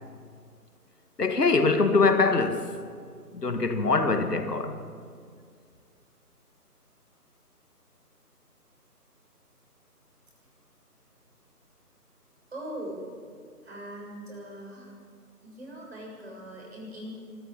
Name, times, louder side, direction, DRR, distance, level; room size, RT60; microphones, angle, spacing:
voice 1, 1.2-2.8 3.3-4.8, left 3 dB, 75° left, 2.1 m, -23 dB
voice 2, 12.5-13.1 13.6-15.0 15.4-17.1, right 1 dB, 40° right, 7.0 m, -40 dB
21.5 x 14.5 x 8.7 m
figure-of-eight pair, 175°, 47 cm